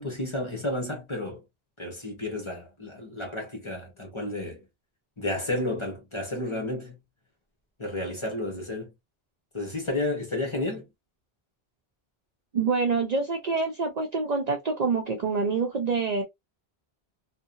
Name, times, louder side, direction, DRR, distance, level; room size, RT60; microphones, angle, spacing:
voice 1, 0.0-1.4 1.8-4.6 5.2-6.9 7.8-8.9 9.5-10.9, left 1 dB, 30° left, 0.8 m, -31 dB
voice 2, 12.5-16.2, right 4 dB, 55° right, 0.5 m, -26 dB
2.7 x 2.1 x 2.4 m
omnidirectional pair, 1.1 m